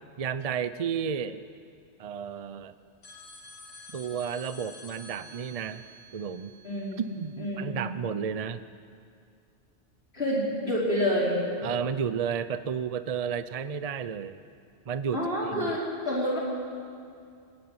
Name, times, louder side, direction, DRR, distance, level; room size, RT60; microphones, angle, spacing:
voice 1, 0.2-1.4 2.0-2.7 3.9-5.9 6.1-6.5 7.0-8.6 11.6-14.4 14.9-15.2 15.5-15.8, right 7 dB, 40° right, 12 dB, 0.6 m, -32 dB
sound 1, 3.0-7.4, left 1 dB, 85° left, 2.4 m, -49 dB
voice 2, 6.6-7.0 7.4-7.8 10.1-11.4 15.1-16.4, equal, 60° left, -6 dB, 5.4 m, -28 dB
25.0 x 11.5 x 9.6 m, 2.4 s
omnidirectional pair, 1.2 m